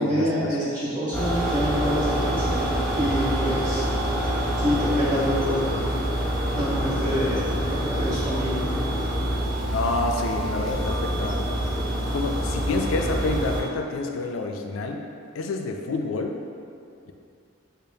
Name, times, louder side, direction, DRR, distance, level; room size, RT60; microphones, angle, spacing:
voice 1, 0.0-2.6 2.9-3.9 4.6-5.9 6.5-8.8, equal, 40° right, -12 dB, 1.5 m, -26 dB
sound 1, 1.1-13.6, right 1 dB, 5° left, 0.7 m, -26 dB
voice 2, 9.7-15.0 15.3-16.4, left 3 dB, 80° left, 3 dB, 0.3 m, -28 dB
5.0 x 2.0 x 2.7 m, 2.5 s
head